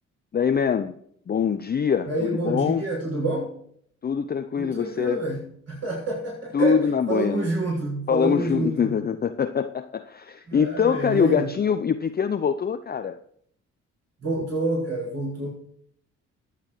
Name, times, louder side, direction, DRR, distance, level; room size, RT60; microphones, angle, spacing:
voice 1, 0.3-1.0 1.3-2.8 4.0-5.2 6.5-7.5 8.1-13.2, left 7 dB, 25° left, 0.6 m, -24 dB
voice 2, 2.0-3.5 4.6-5.4 5.7-8.9 10.5-11.5 14.2-15.5, right 2 dB, 45° right, 6.3 m, -28 dB
22.0 x 8.2 x 3.2 m
figure-of-eight pair, 40°, 36 cm